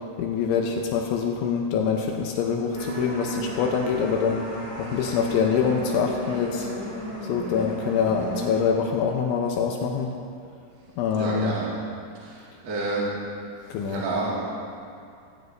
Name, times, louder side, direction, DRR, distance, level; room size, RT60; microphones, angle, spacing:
voice 1, 0.2-4.4 4.8-6.7 7.2-10.1 11.0-11.6 13.7-14.0, left 6 dB, 85° left, 1 dB, 3.1 m, -25 dB
sound 1, 2.7-8.6, equal, 15° right, 2.6 m, -34 dB
voice 2, 11.1-11.7 12.2-13.1 13.9-14.4, right 2 dB, 45° right, -7 dB, 2.5 m, -29 dB
18.0 x 15.5 x 2.7 m, 2.4 s
omnidirectional pair, 5.6 m